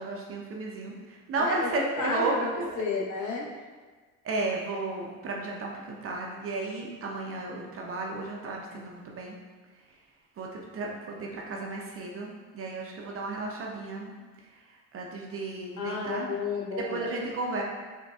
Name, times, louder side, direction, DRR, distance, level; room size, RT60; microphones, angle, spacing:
voice 1, 0.0-2.8 4.2-9.4 10.4-14.2 14.9-16.3 16.9-17.6, right 3 dB, 35° right, -1 dB, 0.5 m, -33 dB
voice 2, 1.4-2.5 2.8-3.5 15.8-17.1, left 4 dB, 50° left, -1 dB, 0.7 m, -32 dB
4.0 x 2.2 x 2.2 m, 1.4 s
supercardioid pair, 95°, 39 cm